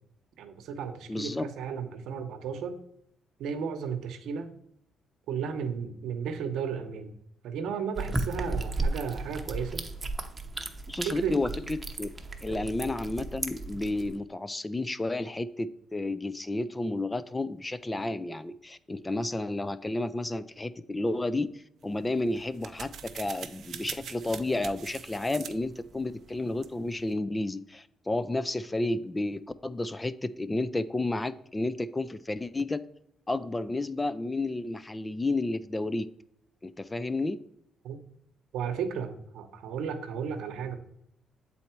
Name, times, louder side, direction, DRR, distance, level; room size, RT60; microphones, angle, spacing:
voice 1, 0.4-2.8 3.4-4.5 5.3-7.1 7.4-9.8 11.0-11.4 12.5-12.6 37.8-38.0 38.5-40.8, right 6 dB, 80° right, 8 dB, 0.9 m, -34 dB
voice 2, 1.1-1.4 10.9-12.1 12.4-32.8 33.3-36.1 36.6-37.4, left 2 dB, 20° left, 15 dB, 0.4 m, -31 dB
sound 1, 8.0-14.2, right 2 dB, 20° right, 0.8 m, -34 dB
sound 2, 21.8-27.2, right 7 dB, 60° right, 0.6 m, -44 dB
7.8 x 4.2 x 4.4 m, 0.72 s
cardioid pair, 90°, 0 cm